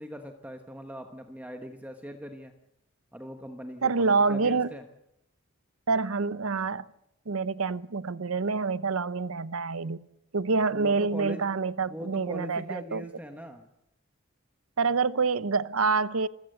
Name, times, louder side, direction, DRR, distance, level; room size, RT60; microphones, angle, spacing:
voice 1, 0.0-2.5 3.1-4.8 10.7-11.4 11.9-13.7, equal, 5° right, 1.1 m, -41 dB
voice 2, 3.8-4.7 5.9-6.9 7.3-10.0 10.3-13.0 14.8-16.3, right 4 dB, 70° right, 0.7 m, -27 dB
27.5 x 14.5 x 7.9 m
head